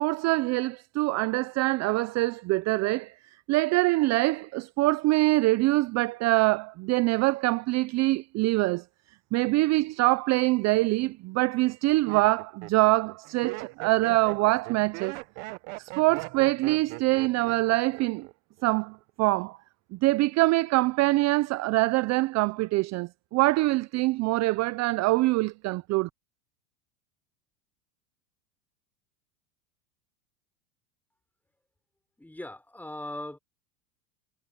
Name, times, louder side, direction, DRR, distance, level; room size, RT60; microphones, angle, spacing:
voice 1, 0.0-3.1 3.5-8.8 9.3-15.2 15.8-18.3 18.6-19.6 19.9-26.1, right 20 dB, 40° right, 0.6 m, -24 dB
Laughter, 10.6-11.1 11.7-18.3 18.6-19.1, right 25 dB, 60° right, 1.2 m, -40 dB
voice 2, 32.2-33.4, left 1 dB, 5° left, 4.3 m, -39 dB
supercardioid pair, 110°, 44 cm